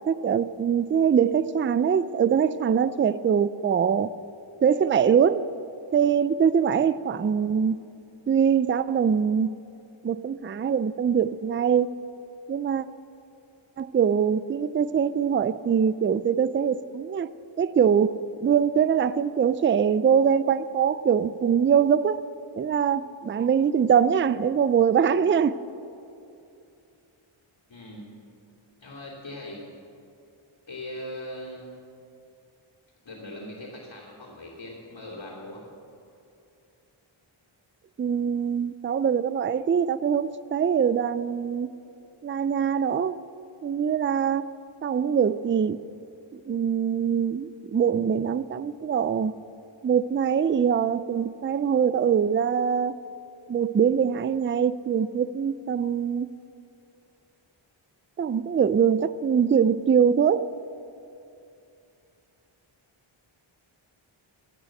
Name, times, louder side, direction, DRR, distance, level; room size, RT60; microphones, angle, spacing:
voice 1, 0.1-4.1 4.6-5.5 5.9-7.9 8.3-9.5 10.0-11.9 12.5-12.9 13.8-17.3 17.6-22.2 22.5-25.6 38.0-41.7 42.2-43.2 43.6-44.5 44.8-45.8 46.3-49.3 49.8-53.0 53.5-56.3 58.2-60.5, right 7 dB, 25° right, 0.3 m, -23 dB
voice 2, 27.7-28.1 28.8-29.6 30.7-31.7 33.0-35.6, left 1 dB, 55° left, 3.0 m, -40 dB
14.5 x 9.2 x 7.7 m
wide cardioid pair, 90°, 50 cm